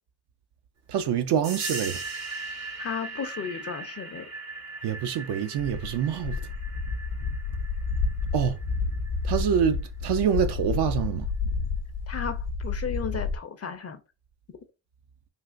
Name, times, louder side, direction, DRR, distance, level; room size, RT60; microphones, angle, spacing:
voice 1, 0.9-2.0 4.8-6.3 8.3-8.6 9.2-11.3, right 8 dB, 60° right, 0.6 m, -26 dB
sound 1, 1.4-9.7, right 3 dB, 80° right, 1.5 m, -39 dB
voice 2, 2.8-4.3 12.1-14.0, left 7 dB, 35° left, 0.5 m, -34 dB
sound 2, 5.6-13.4, left 4 dB, 75° left, 0.6 m, -30 dB
3.3 x 2.4 x 2.4 m
hypercardioid pair, 50°, 46 cm